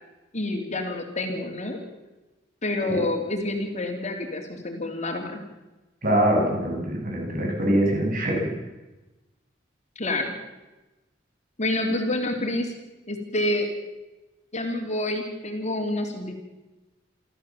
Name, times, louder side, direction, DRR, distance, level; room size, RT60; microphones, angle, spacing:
voice 1, 0.3-1.8 2.6-5.4 9.9-10.3 11.6-12.7 13.1-13.7 14.5-16.3, left 1 dB, 40° left, 4 dB, 3.2 m, -28 dB
voice 2, 6.0-8.5, right 1 dB, 50° right, 1 dB, 7.3 m, -23 dB
27.5 x 14.0 x 7.4 m, 1.1 s
head